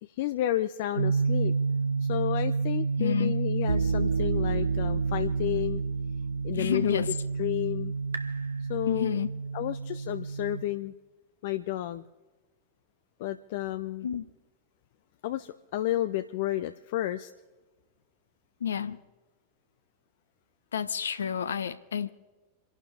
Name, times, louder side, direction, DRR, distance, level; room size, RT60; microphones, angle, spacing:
voice 1, 0.0-1.5 2.0-5.8 6.4-7.9 8.7-9.2 9.5-10.9 11.4-12.0 13.2-14.1 15.2-17.3, left 14 dB, 50° left, 0.6 m, -31 dB
sound 1, 1.0-10.6, right 4 dB, 75° right, 1.2 m, -29 dB
voice 2, 3.0-3.4 6.5-7.1 8.9-9.3 14.0-14.3 18.6-19.0 20.7-22.1, left 8 dB, 70° left, 1.0 m, -30 dB
28.0 x 12.0 x 3.6 m
figure-of-eight pair, 90°, 0 cm